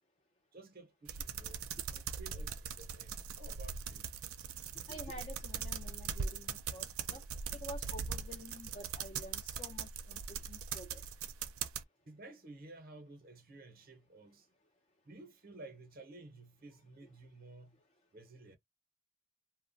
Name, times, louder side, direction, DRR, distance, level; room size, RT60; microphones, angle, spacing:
voice 1, 0.5-4.1 12.1-14.5 15.0-17.8 18.1-18.6, right 2 dB, 40° right, 0.7 m, -54 dB
sound 1, 1.1-11.8, right 6 dB, 75° right, 0.5 m, -41 dB
voice 2, 4.9-7.2 7.5-11.0, equal, 25° left, 0.5 m, -49 dB
2.9 x 2.1 x 2.6 m
head